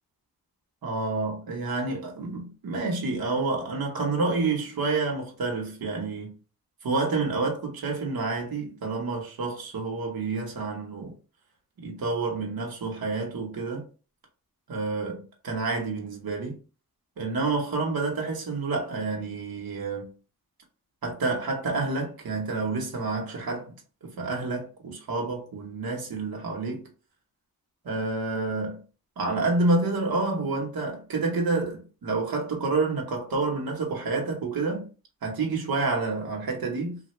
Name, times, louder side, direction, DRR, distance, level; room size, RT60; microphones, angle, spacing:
voice 1, 0.8-6.3 6.8-11.1 11.8-13.8 14.7-16.6 17.2-20.1 21.0-23.7 24.0-26.8 27.8-28.8 29.2-34.9 35.2-37.0, right 3 dB, 75° right, 1.1 m, -29 dB
3.2 x 2.3 x 3.1 m
wide cardioid pair, 130°, 36 cm